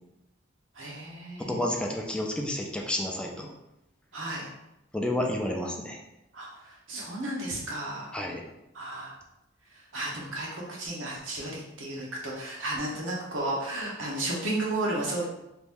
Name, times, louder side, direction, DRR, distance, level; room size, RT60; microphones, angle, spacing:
voice 1, 0.7-1.6 4.1-4.5 6.3-8.2 8.7-9.1 9.9-15.2, right 1 dB, 80° right, -3 dB, 1.0 m, -33 dB
voice 2, 1.4-3.5 4.9-6.0 8.1-8.4, left 1 dB, 5° left, 0 dB, 0.3 m, -30 dB
2.9 x 2.6 x 3.5 m, 0.88 s
head